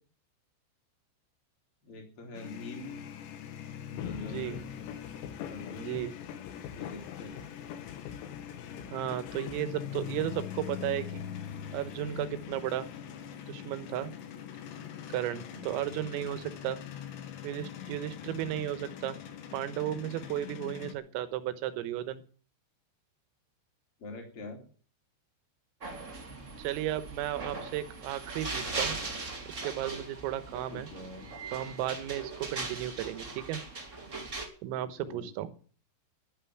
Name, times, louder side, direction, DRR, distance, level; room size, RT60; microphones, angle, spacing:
voice 1, 1.8-3.0 3.9-4.8 5.4-6.2 6.6-7.4 15.3-15.6 24.0-24.6 30.7-31.3 34.7-35.3, left 3 dB, 30° left, 1 dB, 3.9 m, -44 dB
sound 1, 2.3-20.9, left 9 dB, 65° left, 3.6 m, -43 dB
sound 2, 4.0-9.6, left 10 dB, 90° left, 4.1 m, -44 dB
voice 2, 4.2-4.6 5.8-6.1 8.9-11.3 11.7-12.9 13.5-14.1 15.1-16.8 17.4-19.2 19.5-22.2 26.6-29.0 29.5-30.9 31.5-33.6 34.6-35.5, right 12 dB, 85° right, 12 dB, 3.7 m, -34 dB
sound 3, 25.8-34.5, right 3 dB, 25° right, 1.5 m, -39 dB
12.0 x 9.3 x 9.8 m, 0.42 s
omnidirectional pair, 6.0 m